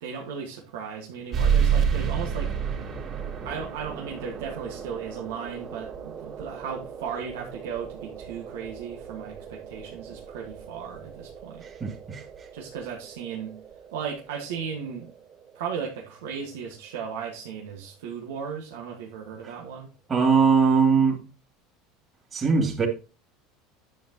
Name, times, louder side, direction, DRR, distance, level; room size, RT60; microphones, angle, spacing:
voice 1, 0.0-2.6 3.4-11.6 12.5-13.6 13.9-15.1 15.5-19.9, right 6 dB, 90° right, 1.6 m, -36 dB
sound 1, 1.3-16.4, right 7 dB, 40° right, 2.9 m, -32 dB
voice 2, 11.6-12.2 20.1-21.2 22.3-22.9, right 5 dB, 25° right, 2.5 m, -21 dB
10.5 x 7.4 x 3.0 m
supercardioid pair, 120°, 0 cm